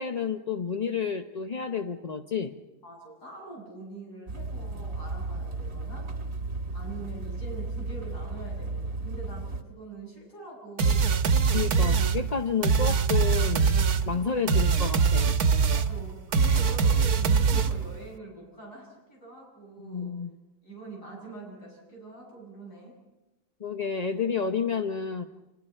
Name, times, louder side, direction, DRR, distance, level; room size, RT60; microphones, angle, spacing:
voice 1, 0.0-2.6 11.5-13.8 14.1-15.4 19.8-20.3 23.6-25.2, left 6 dB, 35° left, 5 dB, 0.7 m, -30 dB
voice 2, 2.8-6.2 6.7-11.2 14.1-14.3 15.7-20.1 20.6-23.0, right 3 dB, 90° left, -2 dB, 8.2 m, -44 dB
sound 1, 4.3-9.6, right 3 dB, 45° right, 1.7 m, -34 dB
sound 2, 10.8-18.0, right 5 dB, 70° right, 1.5 m, -23 dB
29.5 x 26.5 x 4.5 m, 1.0 s
omnidirectional pair, 1.7 m